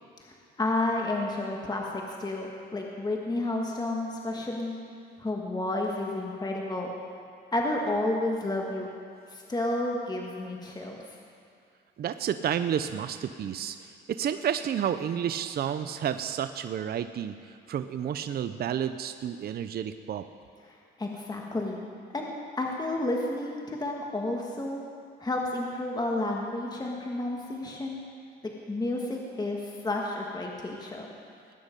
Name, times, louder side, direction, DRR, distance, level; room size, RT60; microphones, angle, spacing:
voice 1, 0.2-4.8 5.2-6.9 7.5-8.9 9.3-11.0 21.0-21.8 22.1-24.8 25.2-28.0 28.4-31.1, left 2 dB, 20° left, 0 dB, 1.6 m, -31 dB
voice 2, 12.0-20.2, right 9 dB, 50° right, 10 dB, 0.5 m, -31 dB
19.0 x 10.0 x 5.2 m, 2.4 s
cardioid pair, 90°, 20 cm